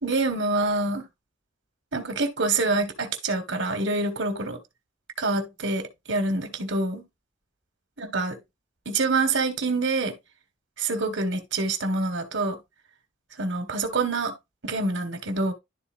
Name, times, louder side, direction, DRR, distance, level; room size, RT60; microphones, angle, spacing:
voice 1, 0.0-1.0 1.9-4.6 5.2-7.0 8.0-8.4 8.8-10.1 10.8-12.6 13.4-14.3 14.6-15.5, right 3 dB, 70° right, 1.7 m, -26 dB
12.0 x 4.2 x 2.6 m
head